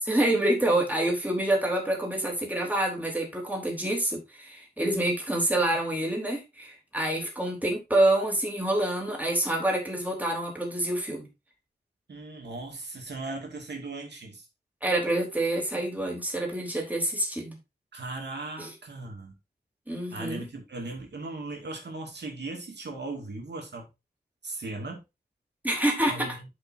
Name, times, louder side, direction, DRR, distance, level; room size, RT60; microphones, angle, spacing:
voice 1, 0.0-11.3 14.8-17.6 18.6-18.7 19.9-20.4 25.6-26.3, right 1 dB, 10° right, 3.2 m, -27 dB
voice 2, 12.1-14.5 17.9-19.3 19.9-23.9 24.4-25.0 26.1-26.5, right 2 dB, 85° right, 2.3 m, -38 dB
11.5 x 5.5 x 2.7 m
wide cardioid pair, 100°, 17 cm